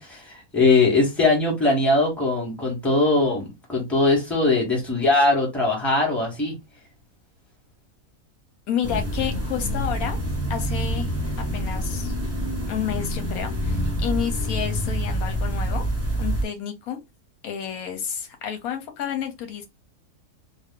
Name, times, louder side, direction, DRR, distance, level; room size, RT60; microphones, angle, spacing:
voice 1, 0.0-6.5, left 3 dB, ahead, 1.1 m, -21 dB
voice 2, 8.7-10.2 10.5-11.1 11.5-12.2 12.7-15.8 16.2-17.0 17.4-19.6, left 8 dB, 85° left, 1.2 m, -30 dB
sound 1, 8.8-16.4, equal, 15° right, 0.6 m, -27 dB
2.5 x 2.3 x 3.6 m
omnidirectional pair, 1.5 m